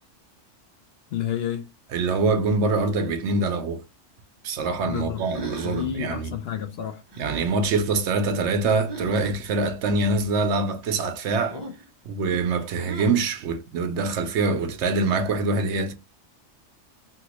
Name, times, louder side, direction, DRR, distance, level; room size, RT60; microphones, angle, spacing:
voice 1, 1.1-1.6 4.8-5.2 5.6-7.0, left 10 dB, 65° left, 0.7 m, -30 dB
voice 2, 1.9-3.8 4.4-6.4 7.2-11.6 12.1-15.9, right 3 dB, 70° right, 0.8 m, -24 dB
sound 1, 5.2-6.0 7.1-7.5 8.9-9.4 11.5-11.9 12.8-13.3, right 1 dB, 35° right, 0.4 m, -37 dB
2.9 x 2.7 x 2.9 m
omnidirectional pair, 1.3 m